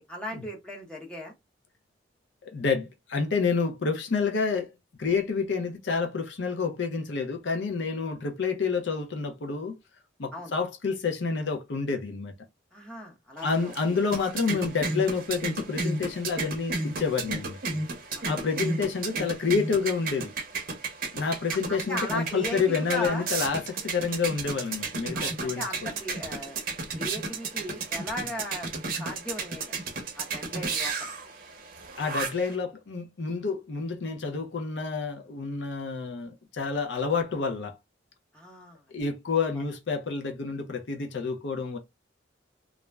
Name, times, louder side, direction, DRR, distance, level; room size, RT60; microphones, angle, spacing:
voice 1, 0.0-1.3 10.3-10.5 12.7-13.7 18.1-18.3 21.5-23.3 25.1-26.6 26.9-28.7 29.0-29.8 30.1-31.1 38.3-38.8 39.5-39.7, left 1 dB, 5° left, 0.8 m, -37 dB
voice 2, 2.4-4.7 5.0-9.7 10.2-12.3 13.4-17.9 18.3-20.3 21.1-25.6 32.0-37.8 38.9-41.8, left 5 dB, 70° left, 0.6 m, -29 dB
sound 1, 13.4-32.6, right 3 dB, 45° right, 0.6 m, -34 dB
2.4 x 2.1 x 3.2 m
head